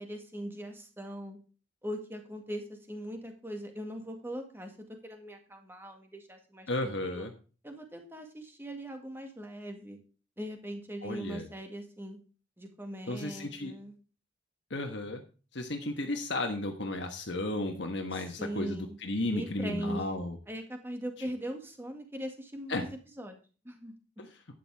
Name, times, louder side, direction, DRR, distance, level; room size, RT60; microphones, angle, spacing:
voice 1, 0.0-1.4 1.8-6.7 7.0-7.3 7.6-10.0 10.4-12.2 12.6-13.9 18.1-19.0 19.3-22.9 23.2-23.4 23.6-23.9, equal, 10° right, 4 dB, 1.9 m, -40 dB
voice 2, 6.7-7.3 11.0-11.5 13.1-13.7 14.7-15.2 15.5-20.4 22.7-22.8 24.2-24.4, left 2 dB, 65° left, 4 dB, 1.4 m, -34 dB
12.0 x 9.3 x 3.5 m, 0.36 s
head